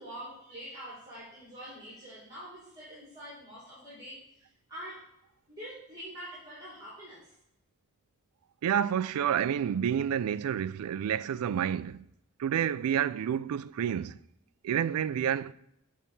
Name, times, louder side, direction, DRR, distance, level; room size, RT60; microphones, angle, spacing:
voice 1, 0.0-5.1 5.5-7.3, equal, 15° right, 2.3 m, -45 dB
voice 2, 8.6-12.1 12.4-14.2 14.6-15.5, right 9 dB, 70° right, 0.3 m, -29 dB
7.6 x 4.1 x 4.6 m
head